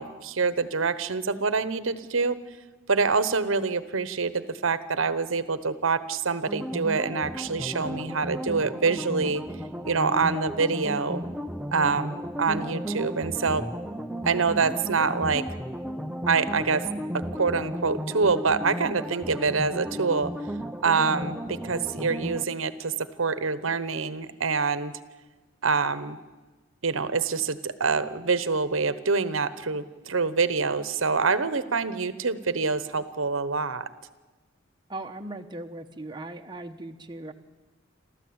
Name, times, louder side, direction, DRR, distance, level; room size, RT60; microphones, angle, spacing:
voice 1, 0.0-2.4 2.9-9.4 9.8-11.2 11.7-13.6 14.2-15.4 16.3-16.8 17.3-20.3 20.8-22.9 23.2-24.9 25.6-26.2 26.8-33.8, right 4 dB, 75° right, 14 dB, 1.0 m, -26 dB
sound 1, 6.5-22.4, equal, 5° right, 0.6 m, -34 dB
voice 2, 34.9-37.3, right 2 dB, 20° right, 4 dB, 1.0 m, -38 dB
28.5 x 13.5 x 8.7 m, 1.2 s
head